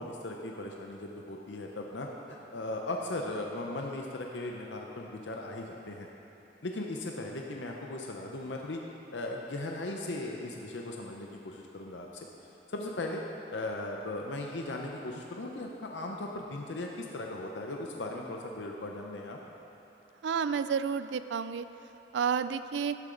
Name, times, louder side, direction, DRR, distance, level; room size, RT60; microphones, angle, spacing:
voice 1, 0.0-6.1 6.6-8.8 9.1-12.3 12.7-13.2 13.5-19.4, left 2 dB, 85° left, 1 dB, 0.7 m, -38 dB
voice 2, 20.2-21.7 22.1-23.0, right 6 dB, 85° right, 12 dB, 0.4 m, -30 dB
12.0 x 9.9 x 3.9 m, 3.0 s
head